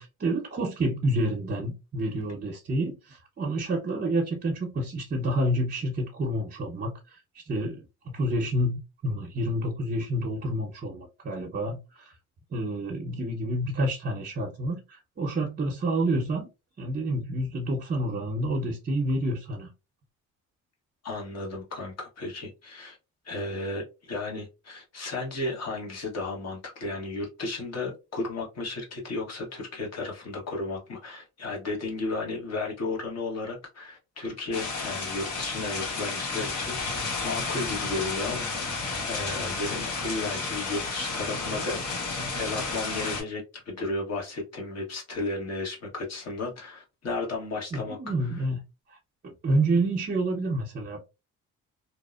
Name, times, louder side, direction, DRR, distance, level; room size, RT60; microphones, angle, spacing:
voice 1, 0.0-12.2 12.5-16.5 16.8-19.7 47.7-48.6 48.9-49.0 49.2-51.1, right 1 dB, 35° right, 0.7 m, -29 dB
voice 2, 21.0-23.0 23.2-48.0, left 3 dB, 55° left, 1.2 m, -34 dB
sound 1, 34.5-43.2, left 3 dB, 80° left, 1.1 m, -32 dB
2.7 x 2.0 x 2.3 m
cardioid pair, 90°, 30 cm